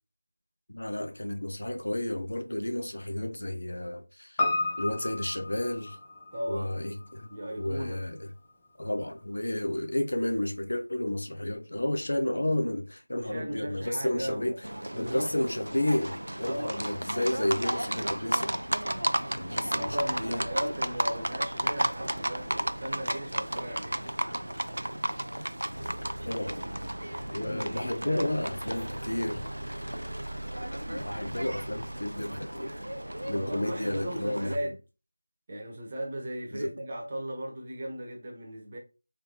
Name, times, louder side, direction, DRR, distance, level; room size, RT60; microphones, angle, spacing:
voice 1, 0.7-4.4 4.8-6.0 6.5-7.3 7.5-8.3 8.8-14.7 15.0-18.6 19.4-20.5 26.3-26.6 27.3-29.5 30.9-32.8 33.3-34.6 36.5-36.7, left 1 dB, 60° left, 0.5 m, -31 dB
Piano, 4.4-8.9 9.2-9.3, left 2 dB, 15° left, 0.5 m, -34 dB
voice 2, 6.3-6.8 7.3-8.0 13.1-14.6 14.9-15.3 16.5-16.9 19.5-24.1 27.3-28.4 33.3-34.8 35.5-38.8, equal, 25° right, 0.9 m, -37 dB
Livestock farm animals working animals, 14.6-34.6, right 1 dB, 75° right, 0.3 m, -34 dB
3.4 x 3.2 x 2.8 m
figure-of-eight pair, 165°, 0 cm